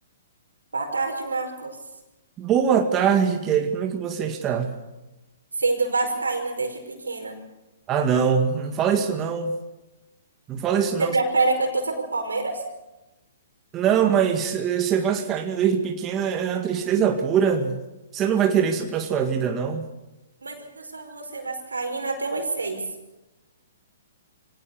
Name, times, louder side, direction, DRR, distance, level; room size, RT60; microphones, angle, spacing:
voice 1, 0.7-1.8 5.6-7.4 11.0-12.6 20.4-22.8, right 3 dB, 85° right, 4 dB, 5.1 m, -26 dB
voice 2, 2.4-4.8 7.9-9.6 10.5-11.2 13.7-17.8 18.1-19.8, right 7 dB, 25° right, 4 dB, 2.0 m, -23 dB
25.0 x 18.0 x 7.1 m, 1.0 s
hypercardioid pair, 125°, 0 cm